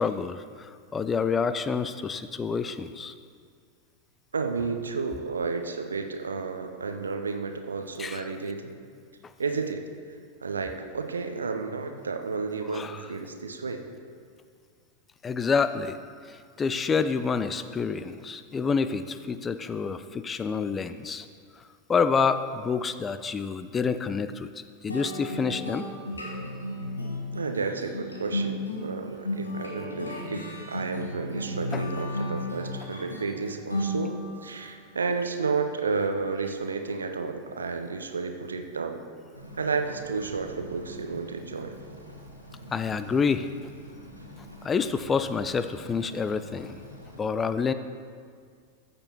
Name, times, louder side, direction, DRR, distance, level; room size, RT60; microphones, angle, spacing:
voice 1, 0.0-3.1 8.0-8.3 12.7-13.0 15.2-16.0 16.3-21.3 21.9-24.5 24.8-25.9 31.7-31.8 42.7-43.5 44.6-46.8 47.2-47.7, left 5 dB, 20° left, 12 dB, 0.3 m, -28 dB
voice 2, 4.3-8.8 9.4-9.8 10.4-13.8 27.3-34.2 34.4-39.0 39.6-41.7, right 4 dB, 75° right, 6 dB, 0.6 m, -31 dB
sound 1, 24.9-34.5, left 1 dB, 80° left, 1.3 m, -34 dB
sound 2, 39.3-47.2, equal, 90° right, 1.2 m, -46 dB
15.0 x 6.8 x 2.9 m, 2.1 s
figure-of-eight pair, 90°, 0 cm